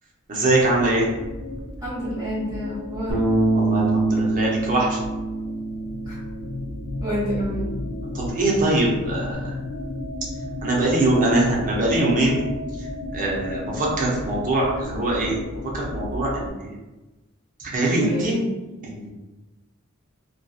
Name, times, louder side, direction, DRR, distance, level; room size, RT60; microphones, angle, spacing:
voice 1, 0.3-1.1 3.5-5.0 8.1-9.5 10.6-12.4 13.1-15.4 15.7-16.7 17.6-18.5 18.8-19.1, right 2 dB, 40° right, -4 dB, 0.7 m, -22 dB
sound 1, 0.6-16.5, left 1 dB, 50° left, 0.5 m, -34 dB
voice 2, 1.8-3.2 6.1-6.2 7.0-7.7 17.9-18.4, equal, 15° right, -8 dB, 1.3 m, -28 dB
Bass guitar, 3.1-9.3, right 2 dB, 75° right, 0.7 m, -26 dB
2.6 x 2.3 x 2.3 m, 1.1 s
head